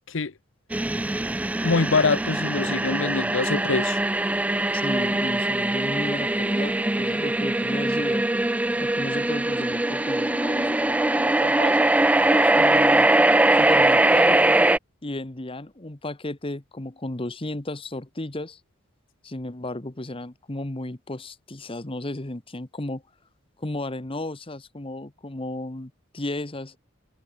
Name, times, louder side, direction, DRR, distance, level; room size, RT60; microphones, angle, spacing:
sound 1, 0.7-14.8, right 2 dB, 5° right, 0.3 m, -22 dB
voice 1, 1.6-4.0, left 4 dB, 65° left, 0.9 m, -24 dB
voice 2, 4.7-8.2 8.8-13.1 13.5-14.4 15.0-18.6 19.2-23.0 23.6-26.8, left 1 dB, 25° left, 1.2 m, -34 dB
head